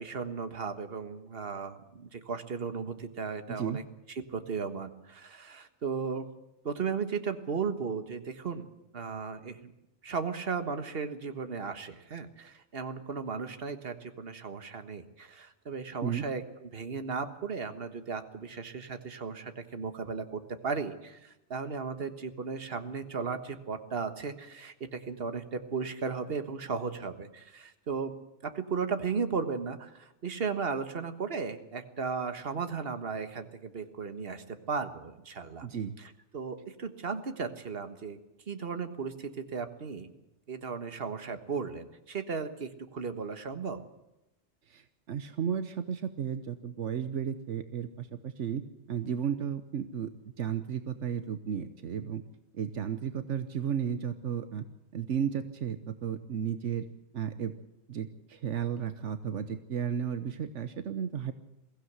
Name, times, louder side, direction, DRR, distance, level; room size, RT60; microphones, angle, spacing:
voice 1, 0.0-3.8 4.1-6.3 6.6-8.7 8.9-9.7 10.0-28.1 28.4-35.7 36.0-38.2 38.5-40.1 40.5-43.8, right 5 dB, 55° right, 9 dB, 1.7 m, -36 dB
voice 2, 3.5-3.8 16.0-16.2 35.6-35.9 44.7-48.6 48.9-50.1 50.4-52.2 52.5-54.6 54.9-56.8 57.1-57.5 57.9-61.3, right 8 dB, 80° right, 10 dB, 1.3 m, -33 dB
22.0 x 16.0 x 8.1 m, 0.92 s
omnidirectional pair, 1.2 m